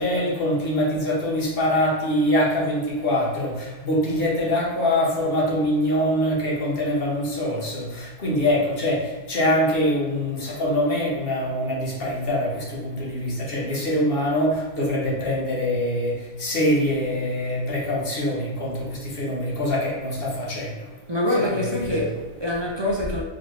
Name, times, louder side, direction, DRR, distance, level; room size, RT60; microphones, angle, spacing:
voice 1, 0.0-20.9 21.3-22.0, left 1 dB, 60° left, 1.2 m, -24 dB
voice 2, 21.1-23.2, left 1 dB, 40° right, 0.4 m, -25 dB
4.0 x 2.9 x 3.1 m
omnidirectional pair, 1.1 m